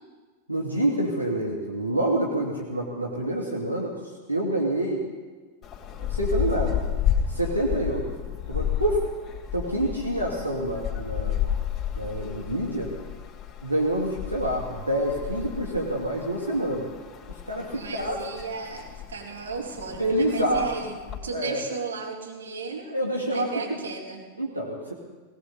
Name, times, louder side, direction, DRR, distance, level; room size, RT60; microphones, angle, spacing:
voice 1, 0.5-4.0 4.3-5.0 6.1-6.9 7.3-8.1 8.5-9.0 9.5-11.5 12.0-12.9 13.6-16.9 17.5-18.2 20.0-20.7 21.3-21.6 22.9-23.8 24.4-24.9, right 1 dB, 90° right, -3 dB, 2.0 m, -27 dB
sound 1, 5.6-21.2, left 9 dB, 20° left, 2.8 m, -32 dB
voice 2, 9.7-10.0 17.7-23.0 23.3-24.3, right 4 dB, 70° right, 0 dB, 2.7 m, -35 dB
19.0 x 18.0 x 4.0 m, 1.4 s
figure-of-eight pair, 90°, 0 cm